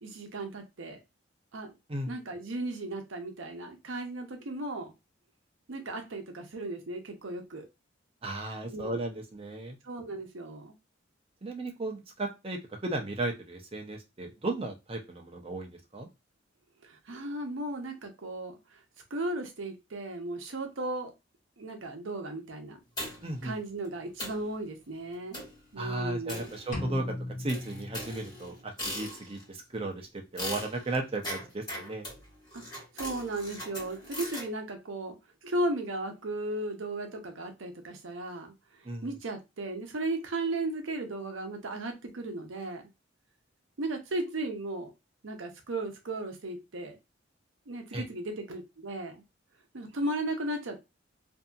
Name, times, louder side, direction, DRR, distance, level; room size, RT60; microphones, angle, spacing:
voice 1, 0.0-1.0 1.5-1.7 2.1-4.9 5.7-7.6 8.7-9.0 9.8-10.7 16.8-18.5 19.1-21.1 21.6-22.8 23.4-25.4 25.7-26.5 32.5-35.2 35.4-38.5 39.0-42.8 43.8-44.9 45.2-47.0 47.7-49.2 49.7-50.8, right 2 dB, 75° right, 4 dB, 0.7 m, -35 dB
voice 2, 8.2-9.8 11.4-16.1 23.2-23.6 25.8-32.1 38.8-39.1 47.9-48.0, right 2 dB, 30° right, 2 dB, 0.6 m, -35 dB
sound 1, 23.0-23.4 23.9-24.0 24.2-24.5 25.3-25.6 26.3-27.0 27.5-29.5 30.4-34.5, left 1 dB, 20° left, 1.3 m, -40 dB
sound 2, 26.7-28.7, left 1 dB, 40° left, 0.7 m, -38 dB
2.7 x 2.7 x 2.3 m, 0.24 s
head